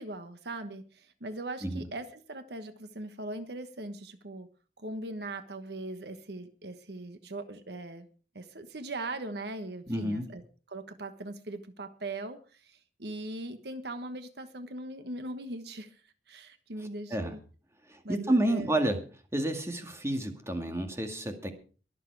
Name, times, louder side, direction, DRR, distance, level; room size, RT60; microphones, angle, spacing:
voice 1, 0.0-4.5 4.8-8.1 8.3-10.4 10.7-17.4 18.0-18.7, right 2 dB, 65° right, 9 dB, 1.3 m, -40 dB
voice 2, 9.9-10.3 17.1-17.3 17.9-19.0 19.3-21.5, right 1 dB, 15° right, 5 dB, 2.1 m, -29 dB
22.5 x 7.6 x 4.7 m, 0.37 s
head